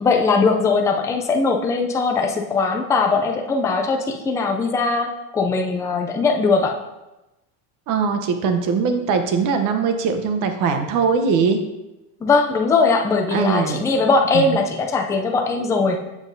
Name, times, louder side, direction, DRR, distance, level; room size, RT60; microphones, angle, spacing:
voice 1, 0.0-6.8 12.2-16.0, left 4 dB, 10° left, 2 dB, 0.3 m, -20 dB
voice 2, 7.9-11.6 13.3-13.8 14.3-14.5, right 5 dB, 45° right, 7 dB, 0.9 m, -21 dB
7.3 x 5.9 x 2.7 m, 1.0 s
supercardioid pair, 135°, 41 cm